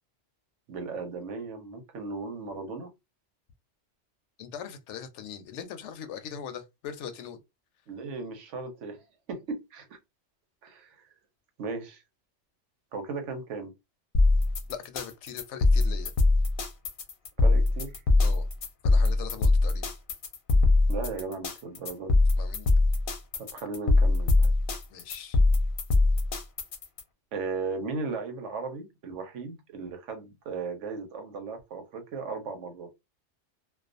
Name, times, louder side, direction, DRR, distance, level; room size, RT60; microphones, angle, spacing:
voice 1, 0.7-2.9 7.9-9.0 9.3-10.0 10.6-11.0 11.6-12.0 12.9-13.7 17.4-18.0 20.9-22.2 23.4-24.5 27.3-32.9, right 4 dB, 90° right, 1.1 m, -36 dB
voice 2, 4.4-7.4 14.7-16.1 18.2-18.5 18.8-19.9 22.4-22.7 24.9-25.4, left 8 dB, 80° left, 0.9 m, -40 dB
sound 1, 14.1-27.0, left 2 dB, 55° left, 0.7 m, -22 dB
2.4 x 2.3 x 2.4 m
omnidirectional pair, 1.2 m